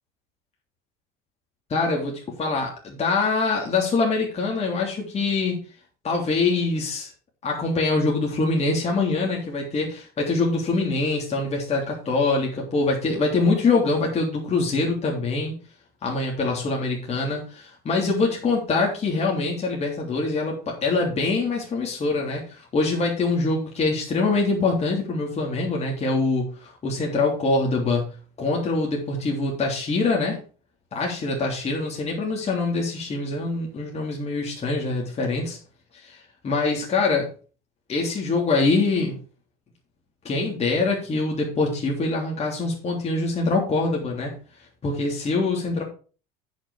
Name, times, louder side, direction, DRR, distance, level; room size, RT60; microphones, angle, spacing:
voice 1, 1.7-5.6 6.0-7.1 7.4-15.5 16.0-28.1 28.4-30.4 30.9-35.6 35.9-37.3 37.9-39.2 40.2-44.3 44.8-45.8, left 3 dB, 35° left, -1 dB, 3.3 m, -24 dB
9.9 x 6.4 x 4.8 m, 0.37 s
supercardioid pair, 90°, 19 cm